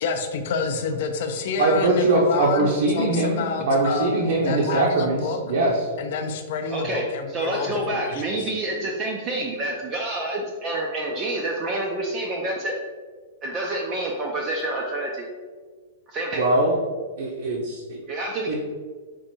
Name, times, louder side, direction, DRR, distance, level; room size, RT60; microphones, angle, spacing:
voice 1, 0.0-5.4 6.0-8.5, left 4 dB, 45° left, 6 dB, 0.4 m, -28 dB
voice 2, 1.6-5.8 16.4-16.8 17.2-18.0 18.5-18.6, right 2 dB, 55° right, -3 dB, 0.7 m, -22 dB
voice 3, 6.7-12.8 13.4-15.3 16.1-16.4 18.1-18.5, right 1 dB, 20° right, -1 dB, 0.4 m, -28 dB
4.5 x 2.5 x 4.3 m, 1.4 s
supercardioid pair, 180°, 0 cm